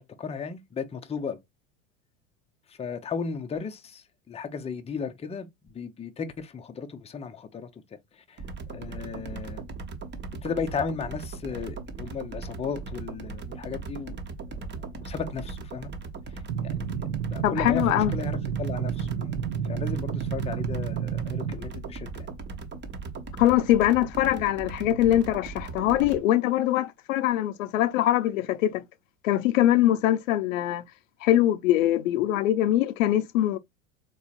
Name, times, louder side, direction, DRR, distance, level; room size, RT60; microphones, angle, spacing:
voice 1, 0.0-1.4 2.7-7.7 8.1-8.4 8.7-9.6 10.4-14.1 14.5-15.9 16.6-16.8 17.3-19.3 19.6-22.3, left 6 dB, 15° left, 0.6 m, -35 dB
sound 1, 8.4-26.2, right 4 dB, 25° right, 1.0 m, -38 dB
sound 2, 16.5-21.5, right 8 dB, 80° right, 0.6 m, -30 dB
voice 2, 17.4-18.1 23.4-28.8 29.2-30.8 31.2-33.6, left 13 dB, 75° left, 0.6 m, -23 dB
4.0 x 3.1 x 2.3 m
hypercardioid pair, 85°, 40 cm